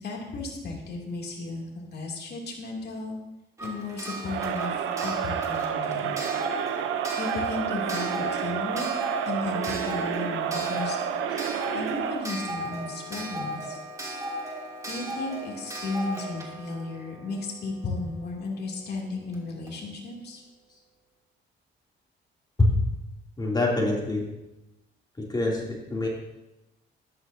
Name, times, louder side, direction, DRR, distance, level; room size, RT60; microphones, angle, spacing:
voice 1, 0.0-3.2 3.6-4.7 5.0-6.1 7.2-8.9 9.2-11.0 11.7-13.8 14.9-20.4, left 3 dB, 55° left, -1 dB, 2.8 m, -34 dB
Clock, 3.6-18.2 19.3-19.4 19.7-19.8, right 1 dB, 15° right, 2.7 m, -37 dB
Crowd, 4.2-12.4, right 8 dB, 90° right, 0.7 m, -30 dB
voice 2, 23.4-24.3 25.2-26.1, left 2 dB, 20° left, -3 dB, 2.8 m, -25 dB
13.0 x 10.5 x 2.7 m, 0.94 s
cardioid pair, 90°, 20 cm